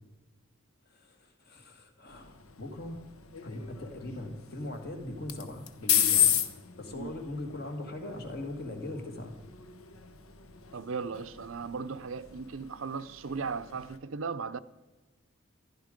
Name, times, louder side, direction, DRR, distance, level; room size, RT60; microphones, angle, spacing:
voice 1, 1.5-3.0 3.4-6.3 6.8-9.3, left 1 dB, 45° left, 2.1 m, -40 dB
sound 1, 2.1-14.0, left 10 dB, 80° left, 1.0 m, -34 dB
voice 2, 10.7-14.6, right 5 dB, 70° right, 0.6 m, -37 dB
15.5 x 11.5 x 5.2 m
head